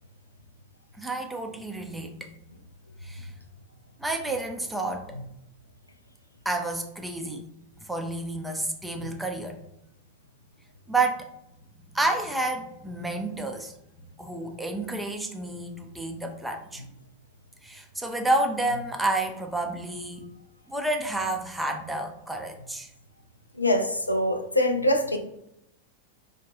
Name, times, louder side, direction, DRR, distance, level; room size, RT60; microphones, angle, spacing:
voice 1, 1.0-2.3 3.0-3.3 4.0-5.1 6.4-7.5 7.9-9.6 10.9-11.3 11.9-13.7 14.2-16.8 17.6-20.3 20.7-22.9, right 2 dB, 5° right, 4 dB, 0.5 m, -30 dB
voice 2, 23.6-25.2, left 1 dB, 85° left, 6 dB, 0.3 m, -24 dB
3.5 x 2.3 x 2.7 m, 0.80 s
figure-of-eight pair, 90°, 0 cm